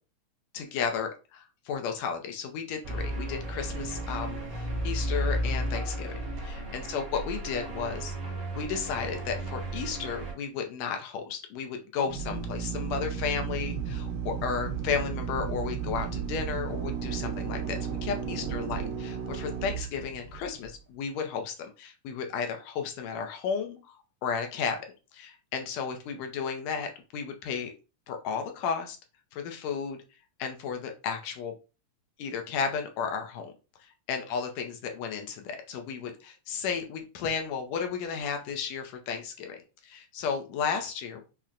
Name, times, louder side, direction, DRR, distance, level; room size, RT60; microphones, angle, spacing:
voice 1, 0.5-6.1 6.4-8.1 8.5-23.9 24.2-24.8 25.1-27.7 28.1-29.0 29.3-30.0 30.4-31.5 32.2-33.5 34.1-39.6 39.8-41.2, left 6 dB, 75° left, 4 dB, 1.7 m, -33 dB
sound 1, 2.8-10.3, right 1 dB, 60° right, 1.2 m, -33 dB
Drill, 12.0-20.7, right 7 dB, 75° right, 2.2 m, -34 dB
5.6 x 2.1 x 2.4 m, 0.32 s
omnidirectional pair, 3.4 m